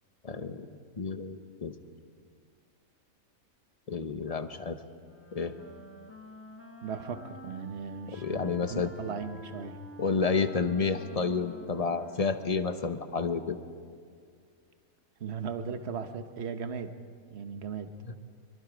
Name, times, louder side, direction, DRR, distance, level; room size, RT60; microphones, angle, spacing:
voice 1, 0.2-0.7 1.0-1.7 3.9-4.8 5.3-5.5 8.1-8.9 10.0-13.6 18.1-18.2, left 5 dB, 30° left, 9 dB, 0.7 m, -30 dB
Wind instrument woodwind instrument, 5.0-13.2, equal, 10° left, 1.1 m, -49 dB
voice 2, 6.8-9.8 15.2-17.0 17.3-17.9, right 6 dB, 50° right, 9 dB, 1.2 m, -37 dB
23.5 x 23.0 x 5.0 m, 2.2 s
omnidirectional pair, 1.5 m